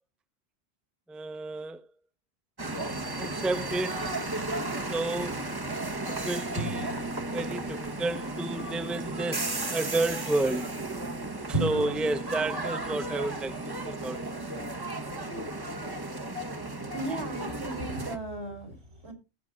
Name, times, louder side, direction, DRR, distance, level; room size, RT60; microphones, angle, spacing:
voice 1, 1.1-1.9 3.2-4.1 4.9-5.5 6.1-7.0 7.3-10.8 11.5-14.4, right 2 dB, ahead, 0.6 m, -31 dB
sound 1, 2.6-18.2, right 2 dB, 20° right, 1.0 m, -34 dB
sound 2, 6.6-8.2 11.5-12.1, right 2 dB, 65° right, 2.1 m, -34 dB
voice 2, 16.8-19.1, right 1 dB, 80° right, 3.8 m, -37 dB
18.5 x 7.3 x 2.4 m
omnidirectional pair, 1.1 m